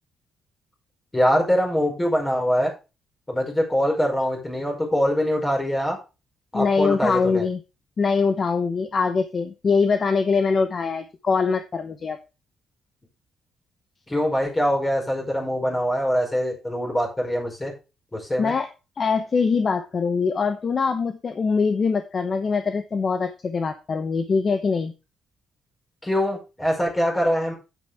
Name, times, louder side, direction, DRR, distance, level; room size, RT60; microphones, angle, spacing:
voice 1, 1.1-2.7 3.3-6.0 6.5-7.4 14.1-17.7 18.1-18.5 26.0-27.5, equal, 15° left, 0 dB, 5.1 m, -23 dB
voice 2, 6.5-7.6 8.0-12.2 18.4-18.7 19.0-24.9, left 5 dB, 35° left, 9 dB, 0.9 m, -23 dB
9.3 x 9.2 x 3.5 m, 0.29 s
cardioid pair, 145°, 0 cm